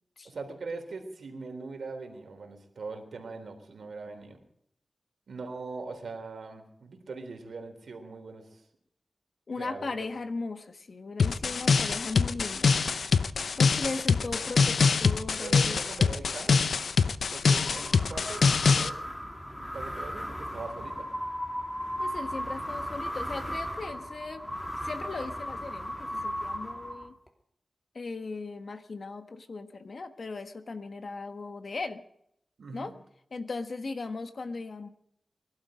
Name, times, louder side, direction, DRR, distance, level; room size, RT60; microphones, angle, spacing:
voice 1, 0.2-4.4 5.3-8.6 9.6-10.1 15.4-16.6 17.3-19.1 19.6-21.1 32.6-32.9, right 3 dB, 85° right, 4 dB, 3.5 m, -41 dB
voice 2, 9.5-12.7 13.6-15.8 22.0-24.4 24.8-27.1 27.9-32.0 32.7-32.9 33.3-34.9, left 3 dB, 60° left, 8 dB, 1.5 m, -37 dB
sound 1, 11.2-18.9, left 5 dB, 85° left, 0.7 m, -24 dB
sound 2, 17.5-27.3, equal, 10° left, 2.9 m, -36 dB
22.5 x 12.0 x 5.1 m, 0.74 s
wide cardioid pair, 85°, 0 cm